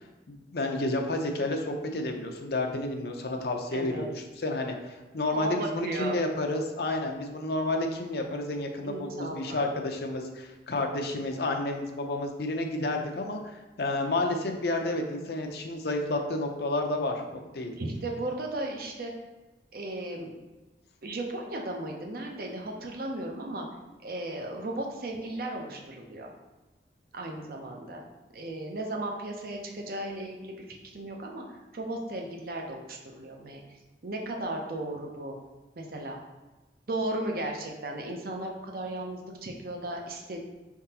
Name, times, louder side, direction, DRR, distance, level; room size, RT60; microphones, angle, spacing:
voice 1, 0.5-17.7, left 2 dB, 55° left, 3 dB, 0.6 m, -30 dB
voice 2, 3.7-4.1 5.3-6.2 8.8-9.7 17.8-19.1 19.7-20.3 21.0-23.7 24.0-26.3 27.1-28.0 28.3-33.6 34.0-35.4 35.8-36.2 36.9-40.4, right 1 dB, 50° right, 1 dB, 0.6 m, -35 dB
4.6 x 3.5 x 2.8 m, 1.2 s
head